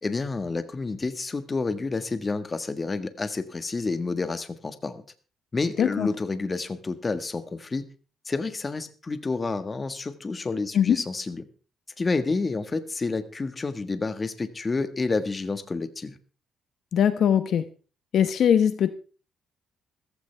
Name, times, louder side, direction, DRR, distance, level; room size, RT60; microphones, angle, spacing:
voice 1, 0.0-5.0 5.5-7.9 8.2-11.5 12.0-16.2, left 3 dB, 30° left, 11 dB, 1.5 m, -29 dB
voice 2, 5.8-6.1 10.7-11.0 16.9-17.7 18.1-18.9, left 8 dB, 65° left, 11 dB, 1.0 m, -21 dB
15.5 x 15.0 x 3.4 m, 0.36 s
cardioid pair, 90°, 0 cm